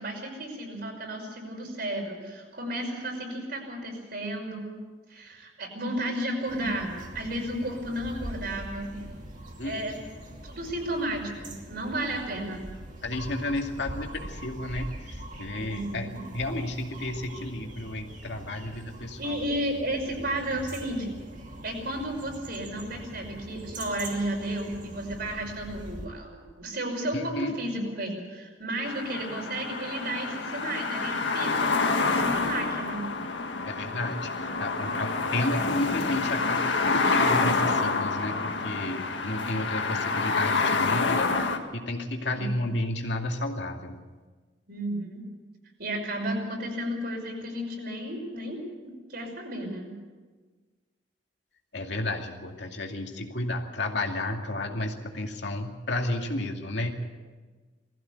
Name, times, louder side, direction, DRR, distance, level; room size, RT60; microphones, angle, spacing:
voice 1, 0.0-4.7 5.1-9.0 9.6-10.0 10.2-12.6 15.6-16.2 19.2-21.1 21.6-33.0 42.3-42.6 44.7-45.2 45.8-48.6 49.1-49.9, right 1 dB, 60° right, 1 dB, 5.8 m, -33 dB
sound 1, 6.5-26.1, right 1 dB, 45° right, 2.7 m, -43 dB
voice 2, 13.0-19.4 27.1-27.5 33.7-44.0 51.7-57.1, left 1 dB, 70° left, 2 dB, 2.4 m, -32 dB
sound 2, 28.8-41.6, left 3 dB, 85° left, 1.9 m, -27 dB
21.0 x 15.0 x 8.2 m, 1.4 s
head